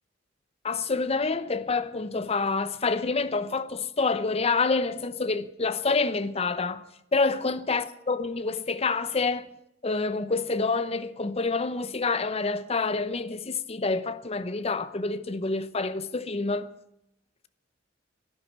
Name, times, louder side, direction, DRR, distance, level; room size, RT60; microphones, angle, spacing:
voice 1, 0.6-6.8 7.1-9.5 9.8-16.7, left 4 dB, 35° left, 0.8 m, -27 dB
11.5 x 11.0 x 9.8 m
head